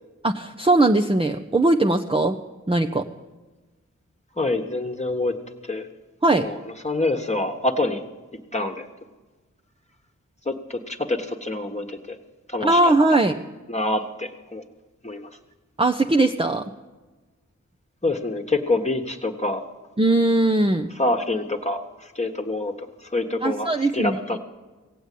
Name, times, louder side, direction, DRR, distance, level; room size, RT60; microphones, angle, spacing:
voice 1, 0.2-2.4 2.7-3.0 6.2-6.5 12.6-13.4 15.8-16.6 20.0-20.9 23.4-24.4, right 2 dB, 20° right, 2 dB, 0.7 m, -20 dB
voice 2, 4.4-5.3 5.6-5.9 6.3-8.0 8.5-8.9 10.4-12.2 12.5-13.2 13.7-14.6 15.0-15.3 18.0-19.6 20.9-24.4, left 2 dB, 20° left, 3 dB, 1.4 m, -26 dB
17.0 x 7.9 x 8.4 m, 1.3 s
wide cardioid pair, 60°, 30 cm